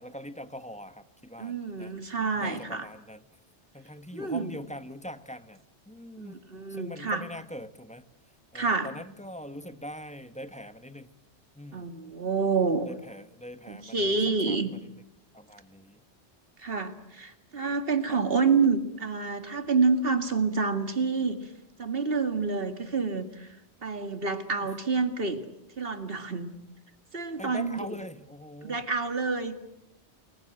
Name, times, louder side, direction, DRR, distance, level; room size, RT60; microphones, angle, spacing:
voice 1, 0.0-1.9 2.3-3.2 3.7-6.4 6.7-8.0 8.5-11.1 11.5-11.9 12.9-14.1 14.5-14.8 15.3-16.0 18.1-18.2 27.4-28.9, equal, 5° left, 11 dB, 1.2 m, -42 dB
voice 2, 1.4-2.9 4.1-4.6 6.2-7.2 8.5-8.9 11.7-12.9 13.7-14.7 16.6-21.4 21.8-23.5 23.8-25.4 25.8-26.5 27.1-27.8 28.6-29.6, right 4 dB, 55° right, 8 dB, 2.3 m, -28 dB
29.5 x 21.5 x 7.9 m, 0.86 s
omnidirectional pair, 1.1 m